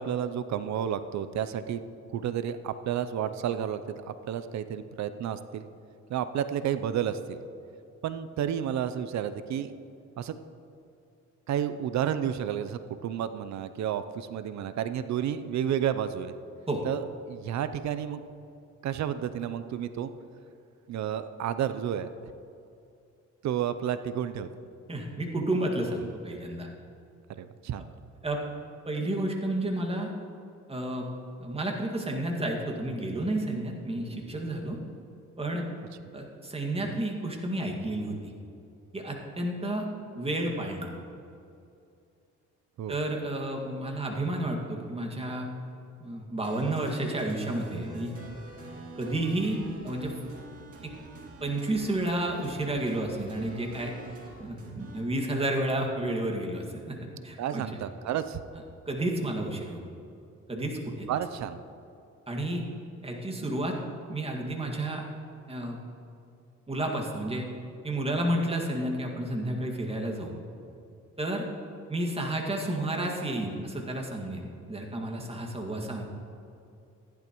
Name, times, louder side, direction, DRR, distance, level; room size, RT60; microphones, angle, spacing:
voice 1, 0.0-1.8 2.1-5.6 6.1-7.4 8.0-9.7 10.2-10.4 11.5-16.3 16.8-18.2 18.8-20.1 20.9-22.1 23.4-24.5 27.3-27.8 36.8-37.0 42.8-42.9 57.4-58.4 61.1-61.6, right 9 dB, 65° right, 12 dB, 0.6 m, -31 dB
voice 2, 24.9-26.7 28.2-28.4 28.9-30.1 30.7-31.1 31.4-34.8 35.4-35.7 36.1-38.3 38.9-39.9 40.2-40.9 42.9-45.5 46.0-48.1 49.0-49.6 49.8-50.1 51.4-53.9 54.4-57.0 57.2-57.6 58.9-59.8 60.5-61.1 62.3-62.6 63.0-63.8 64.1-65.0 65.5-65.8 66.7-67.4 67.8-70.3 71.2-71.5 71.9-76.0, right 1 dB, 20° right, 0 dB, 2.0 m, -31 dB
sound 1, 46.4-55.0, right 2 dB, 50° right, 2.4 m, -46 dB
15.0 x 10.5 x 3.1 m, 2.6 s
cardioid pair, 90°, 30 cm